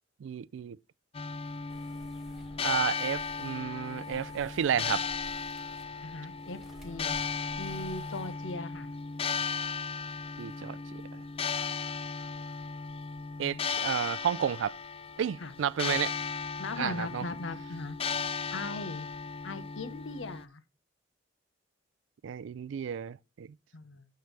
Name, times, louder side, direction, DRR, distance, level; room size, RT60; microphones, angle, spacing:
voice 1, 0.2-0.8 2.6-5.0 10.4-11.0 13.4-14.8 15.2-16.1 16.8-17.2 22.2-23.5, right 8 dB, 75° right, 0.3 m, -32 dB
sound 1, 1.1-20.5, left 5 dB, 30° left, 0.4 m, -36 dB
sound 2, 1.7-8.5, equal, ahead, 1.7 m, -53 dB
voice 2, 6.0-7.2 7.6-8.9 15.4-15.5 16.6-18.0 18.5-19.1 19.4-20.6 23.7-24.1, left 3 dB, 80° left, 0.9 m, -39 dB
9.3 x 6.9 x 3.2 m
head